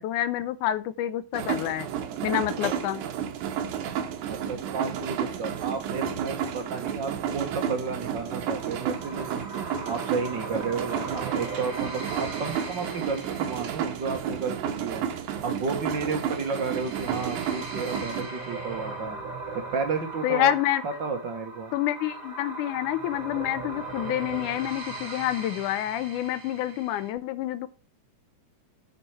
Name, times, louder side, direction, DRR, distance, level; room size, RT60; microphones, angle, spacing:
voice 1, 0.0-1.9 2.2-3.0 20.2-20.8 21.7-27.7, left 13 dB, 80° left, 14 dB, 2.1 m, -28 dB
sound 1, 1.3-18.2, right 8 dB, 75° right, 2.4 m, -32 dB
voice 2, 4.3-9.5 9.8-15.1 15.4-19.2 19.7-20.5 20.8-21.7, right 4 dB, 55° right, 5 dB, 1.3 m, -32 dB
sound 2, 8.4-27.1, right 2 dB, 35° right, 1.6 m, -39 dB
8.1 x 5.4 x 5.7 m, 0.34 s
omnidirectional pair, 3.5 m